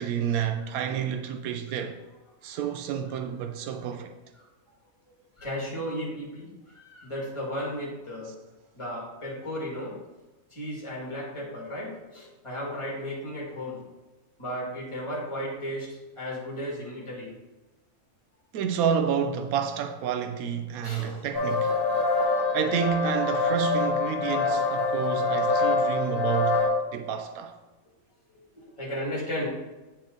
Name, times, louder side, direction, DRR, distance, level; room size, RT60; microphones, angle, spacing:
voice 1, 0.0-2.0 2.4-4.1 18.5-21.8 22.2-27.6, right 8 dB, 85° right, 1.0 m, -30 dB
voice 2, 5.4-8.3 8.7-10.0 10.5-13.8 14.4-17.3 20.8-21.2 28.5-29.5, equal, 20° left, 2.1 m, -34 dB
sound 1, 21.3-26.7, left 3 dB, 40° left, 1.6 m, -25 dB
8.8 x 4.3 x 3.8 m
omnidirectional pair, 1.5 m